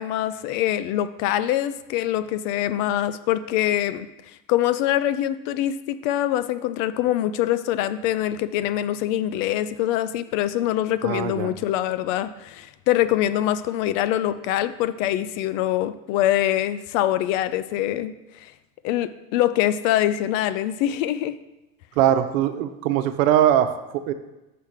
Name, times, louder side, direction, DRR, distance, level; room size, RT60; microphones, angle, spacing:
voice 1, 0.0-4.1 4.5-18.1 18.4-18.5 18.8-21.3, left 12 dB, 70° left, 13 dB, 0.5 m, -24 dB
voice 2, 11.0-11.5 22.0-24.1, right 11 dB, 80° right, 9 dB, 0.8 m, -21 dB
5.7 x 5.1 x 6.5 m, 1.0 s
supercardioid pair, 115°, 39 cm